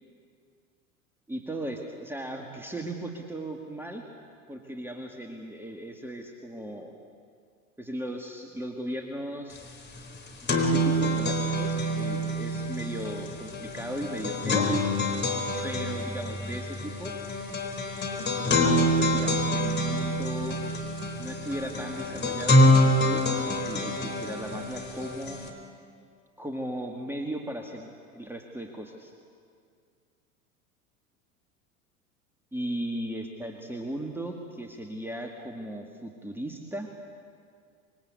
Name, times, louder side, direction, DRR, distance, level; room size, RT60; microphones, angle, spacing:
voice 1, 1.3-4.0 4.5-6.9 7.8-9.6 10.4-14.7 15.6-17.2 18.5-20.6 21.2-25.4 26.4-29.1 32.5-36.9, right 1 dB, 5° right, 2 dB, 2.1 m, -37 dB
sound 1, 9.6-9.7 10.0-25.5, left 1 dB, 25° left, 4.1 m, -26 dB
25.5 x 23.0 x 8.5 m, 2.2 s
figure-of-eight pair, 80°, 44 cm